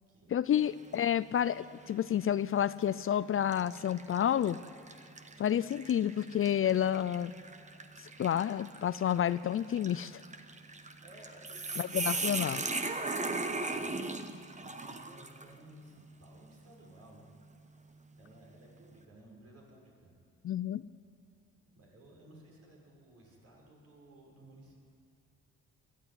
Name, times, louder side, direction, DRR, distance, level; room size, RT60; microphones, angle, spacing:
voice 1, 0.3-4.6 5.4-7.3 8.2-10.2 11.8-12.7 20.4-20.8, left 10 dB, 45° left, 17 dB, 0.5 m, -30 dB
sound 1, 0.6-1.1 1.6-1.7 2.7-2.9 3.5-15.5, right 3 dB, 25° right, 1.3 m, -39 dB
voice 2, 10.7-12.4 13.0-13.9 14.6-17.3 18.1-20.1 21.8-24.8, right 1 dB, 55° right, -1 dB, 6.3 m, -57 dB
19.5 x 13.5 x 9.8 m, 2.4 s
cardioid pair, 90°, 30 cm